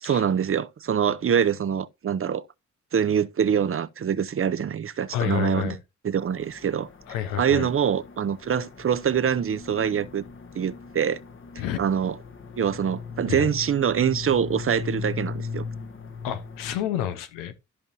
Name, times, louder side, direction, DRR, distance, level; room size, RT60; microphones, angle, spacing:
voice 1, 0.0-2.4 2.9-5.8 6.0-6.9 7.3-10.2 10.5-11.2 11.8-12.1 12.6-15.7, right 8 dB, 45° right, 0.7 m, -24 dB
voice 2, 5.1-5.8 7.1-7.7 11.6-11.8 13.3-13.5 16.2-17.5, left 11 dB, 90° left, 0.9 m, -29 dB
sound 1, 6.1-16.7, left 5 dB, 40° left, 1.2 m, -38 dB
13.0 x 5.3 x 2.7 m
supercardioid pair, 45°, 32 cm